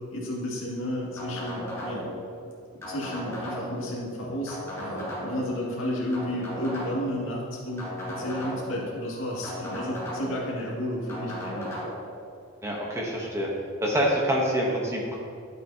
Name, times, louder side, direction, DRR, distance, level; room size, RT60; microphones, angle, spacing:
voice 1, 0.1-2.1 2.7-11.7, equal, 60° left, -4 dB, 2.1 m, -32 dB
sound 1, 1.2-2.2 2.8-3.9 4.5-5.5 6.1-7.2 7.8-8.8 9.4-10.5 11.1-11.9, left 1 dB, 15° left, 1.9 m, -35 dB
voice 2, 12.6-13.5 13.8-15.2, equal, 15° right, -2 dB, 0.9 m, -26 dB
11.5 x 8.0 x 2.8 m, 2.4 s
head